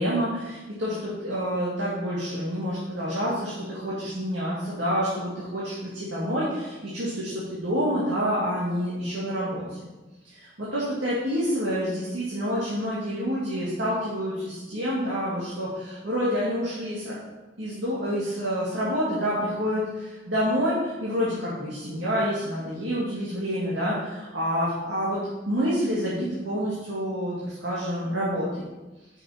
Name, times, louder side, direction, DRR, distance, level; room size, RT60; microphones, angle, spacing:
voice 1, 0.0-9.9 10.3-17.2 17.6-25.2 25.5-28.6, equal, 75° right, -8 dB, 2.4 m, -28 dB
8.5 x 6.6 x 4.3 m, 1.1 s
head